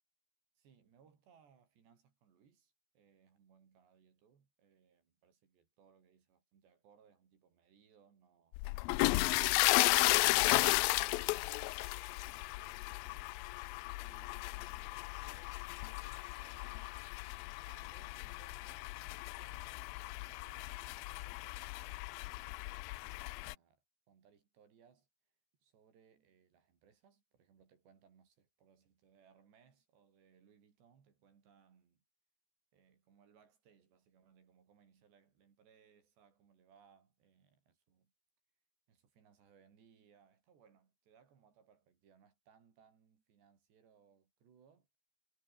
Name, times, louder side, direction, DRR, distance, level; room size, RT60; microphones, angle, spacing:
voice 1, 0.6-10.4 10.7-13.4 14.0-17.0 17.7-25.1 25.6-32.0 32.7-38.1 38.9-44.9, right 7 dB, 90° right, 6.4 m, -68 dB
sound 1, 8.5-23.5, left 22 dB, 90° left, 2.1 m, -34 dB
omnidirectional pair, 4.8 m